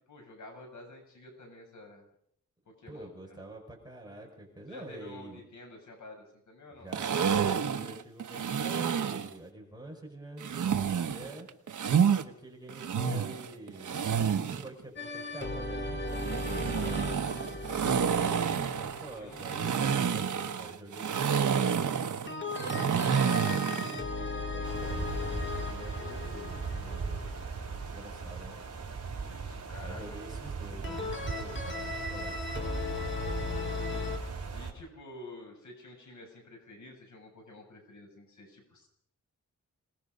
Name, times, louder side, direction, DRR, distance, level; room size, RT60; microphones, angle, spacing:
voice 1, 0.1-2.0 2.8-3.4 4.7-7.2 11.0-11.5 16.4-18.7 19.1-20.1 29.2-30.2 30.7-31.4 33.9-34.0 34.5-38.9, left 1 dB, 70° left, 1 dB, 7.1 m, -50 dB
voice 2, 2.9-5.4 6.8-11.5 11.9-17.0 18.4-21.9 22.4-27.4 27.9-28.6 29.8-32.5 32.8-34.2, right 1 dB, 15° right, 0 dB, 5.4 m, -47 dB
sound 1, 6.9-9.3 10.4-12.2 12.7-14.7 16.1-24.0, right 7 dB, 75° right, 1.2 m, -29 dB
sound 2, 15.0-19.7 22.3-28.1 30.8-34.2, left 3 dB, 40° left, 2.9 m, -37 dB
sound 3, 24.6-34.7, right 5 dB, 55° right, 4.4 m, -38 dB
26.5 x 19.5 x 5.4 m, 0.66 s
wide cardioid pair, 145°, 31 cm